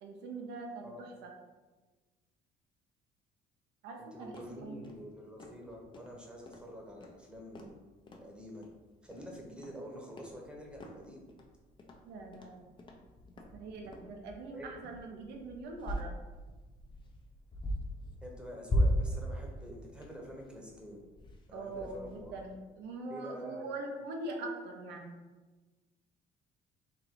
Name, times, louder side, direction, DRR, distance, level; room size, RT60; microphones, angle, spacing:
voice 1, 0.0-0.9 1.2-1.3 3.8-4.8 12.1-12.7 13.5-16.1 21.5-25.1, right 2 dB, 85° right, 2 dB, 0.8 m, -42 dB
voice 2, 4.0-8.6 9.0-11.2 14.5-14.7 18.2-21.0 21.5-22.4 23.1-23.7, equal, 5° right, 0 dB, 1.0 m, -47 dB
sound 1, 4.3-22.5, equal, 30° left, 0.6 m, -39 dB
3.8 x 2.5 x 4.6 m, 1.2 s
cardioid pair, 110°, 17 cm